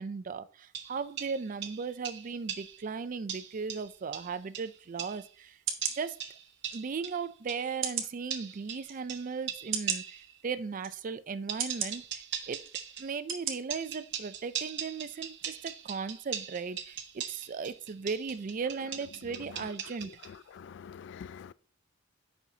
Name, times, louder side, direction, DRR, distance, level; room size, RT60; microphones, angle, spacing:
voice 1, 0.0-5.6 5.9-6.2 6.7-12.6 13.0-20.1, right 5 dB, 45° right, 0.4 m, -37 dB
sound 1, 0.7-2.9 3.3-5.3 5.8-7.7 8.3-10.3 11.5-13.2 13.7-20.4, right 9 dB, 65° right, 0.8 m, -40 dB
sound 2, 5.0-5.1 5.7-6.0 6.7-6.8 7.8-8.1 8.8-8.9 9.7-10.0 10.8-10.9 11.6-11.9 12.6-12.8 13.3-13.5 14.0-14.1, right 8 dB, 80° right, 1.2 m, -33 dB
voice 2, 20.6-21.5, left 7 dB, 60° left, 0.3 m, -45 dB
8.2 x 5.5 x 2.8 m
head